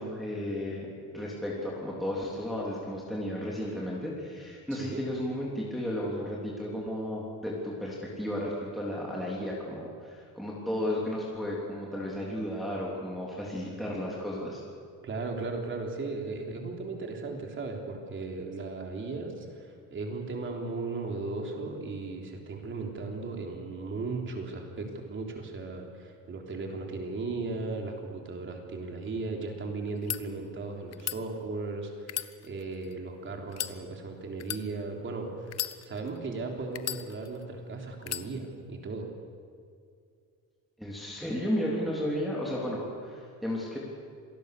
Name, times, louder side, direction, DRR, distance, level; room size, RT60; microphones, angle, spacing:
voice 1, 0.0-14.6 40.8-43.8, left 1 dB, ahead, -5 dB, 3.4 m, -33 dB
voice 2, 15.0-39.1, right 3 dB, 35° right, 2 dB, 3.5 m, -36 dB
sound 1, 29.9-30.2 30.9-31.2 32.0-32.9 33.5-33.8 34.4-34.6 35.5-36.2 36.8-37.4 38.0-38.3, left 11 dB, 50° left, 0.9 m, -35 dB
27.0 x 19.0 x 6.8 m, 2.2 s
cardioid pair, 160°, 33 cm